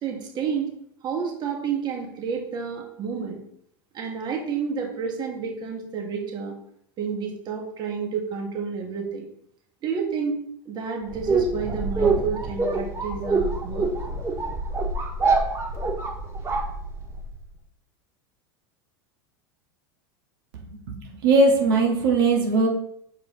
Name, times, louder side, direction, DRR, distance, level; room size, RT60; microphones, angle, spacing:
voice 1, 0.0-0.7 1.0-3.4 3.9-6.5 7.0-9.3 9.8-13.9, right 6 dB, 40° right, 1 dB, 1.7 m, -30 dB
sound 1, 11.1-17.3, right 3 dB, 25° right, 1.7 m, -25 dB
voice 2, 21.2-22.7, right 3 dB, 70° right, -1 dB, 1.7 m, -19 dB
6.8 x 4.8 x 3.9 m, 0.71 s
hypercardioid pair, 100°, 12 cm